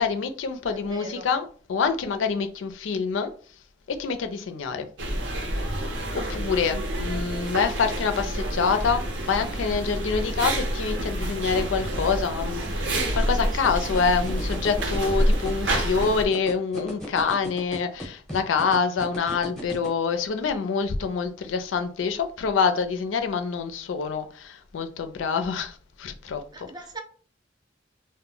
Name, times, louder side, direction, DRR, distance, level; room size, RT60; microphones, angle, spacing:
voice 1, 0.0-3.3 3.9-4.9 6.1-26.7, left 5 dB, 80° left, 0.4 m, -26 dB
voice 2, 0.7-1.3 2.0-2.1 13.0-14.1 26.5-27.0, right 3 dB, 20° right, 0.4 m, -41 dB
sound 1, 5.0-16.2, right 1 dB, 70° right, 0.6 m, -28 dB
sound 2, 13.6-19.9, equal, ahead, 0.7 m, -36 dB
2.1 x 2.0 x 3.7 m
head